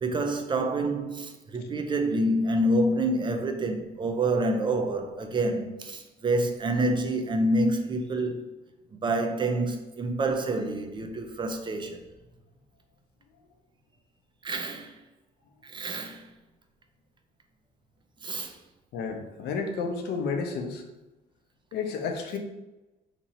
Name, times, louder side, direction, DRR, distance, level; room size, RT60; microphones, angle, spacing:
voice 1, 0.0-8.4 9.0-12.0 14.4-15.0 15.6-16.3 18.2-18.6, right 1 dB, 30° right, 0.4 m, -27 dB
voice 2, 18.9-20.8 21.7-22.4, left 5 dB, 75° left, 0.6 m, -31 dB
2.9 x 2.7 x 4.0 m
cardioid pair, 110°, 17 cm